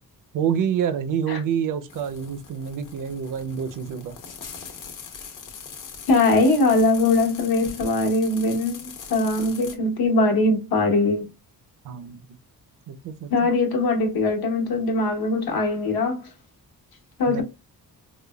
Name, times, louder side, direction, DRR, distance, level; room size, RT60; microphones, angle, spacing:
voice 1, 0.3-4.2 11.8-12.2 12.9-13.3 17.3-17.4, right 8 dB, 60° right, 0.5 m, -27 dB
sound 1, 1.9-9.7, left 6 dB, 55° left, 0.8 m, -41 dB
voice 2, 6.1-11.3 13.3-16.2 17.2-17.4, left 2 dB, 75° left, 1.1 m, -21 dB
4.9 x 2.1 x 2.2 m
wide cardioid pair, 155°, 37 cm